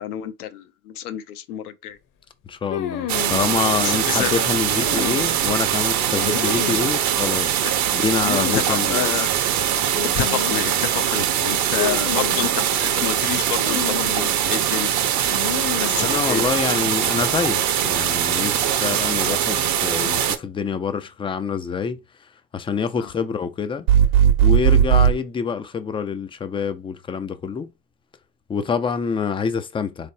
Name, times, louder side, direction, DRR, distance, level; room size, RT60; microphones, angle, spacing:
voice 1, 0.0-2.0 3.8-4.6 8.5-9.3 10.0-14.9 15.8-16.4 23.0-23.1, left 11 dB, 75° left, 0.7 m, -29 dB
voice 2, 2.5-7.6 7.9-9.1 16.0-22.0 22.5-23.9 24.4-27.7 28.5-30.1, left 6 dB, 15° left, 0.4 m, -26 dB
sound 1, 2.7-3.4 4.7-5.5 6.2-6.9 8.2-8.7 8.9-9.0 9.9-10.6 11.8-12.5 13.5-14.3 15.3-16.1, left 8 dB, 45° left, 0.9 m, -30 dB
sound 2, 3.1-20.4, right 10 dB, 40° right, 0.7 m, -22 dB
sound 3, 23.9-25.2, right 9 dB, 70° right, 1.0 m, -15 dB
3.7 x 3.4 x 2.7 m
hypercardioid pair, 70°, 45 cm